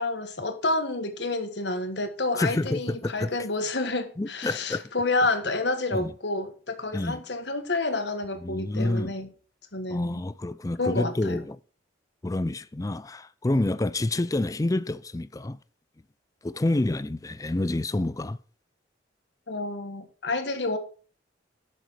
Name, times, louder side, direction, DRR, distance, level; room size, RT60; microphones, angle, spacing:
voice 1, 0.0-9.3 9.7-10.2 10.8-11.4 19.5-20.8, left 2 dB, 65° left, 1.5 m, -29 dB
voice 2, 2.4-3.3 4.2-4.8 5.9-6.1 6.9-7.2 8.4-9.1 9.9-11.6 12.2-15.6 16.4-18.4, left 2 dB, 20° left, 0.4 m, -28 dB
11.5 x 6.7 x 4.5 m
head